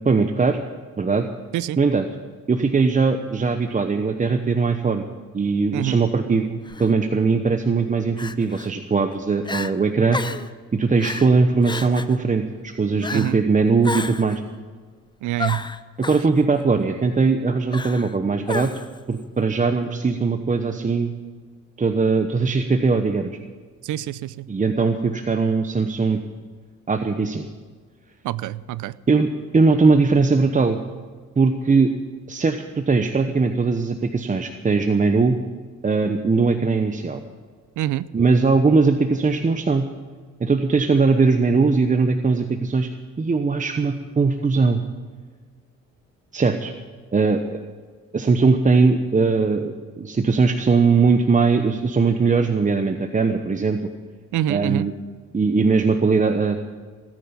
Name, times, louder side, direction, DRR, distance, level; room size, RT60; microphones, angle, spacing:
voice 1, 0.0-0.6 1.0-1.3 1.8-2.1 2.5-5.0 5.3-10.2 10.7-14.4 16.0-18.7 19.1-21.1 21.8-23.3 24.5-26.2 26.9-27.5 29.1-30.8 31.4-31.9 32.3-35.4 35.8-37.2 38.1-39.8 40.4-42.9 43.2-44.8 46.3-46.7 47.1-47.6 48.1-53.8 54.5-54.9 55.3-56.6, right 4 dB, 25° right, 6 dB, 1.0 m, -20 dB
Crying sobbing, 6.7-6.9 8.2-8.7 9.1-9.2 9.4-9.7 10.1-10.5 11.0-11.3 11.6-12.2 13.0-13.4 13.8-14.4 15.4-16.3 17.7-18.1 18.5-19.0, left 3 dB, 15° left, 0.7 m, -31 dB
voice 2, 15.2-15.6 23.8-24.5 28.2-28.9 37.8-38.1 54.3-54.9, right 14 dB, 80° right, 19 dB, 0.6 m, -26 dB
18.0 x 9.8 x 7.1 m, 1.5 s
cardioid pair, 90°, 30 cm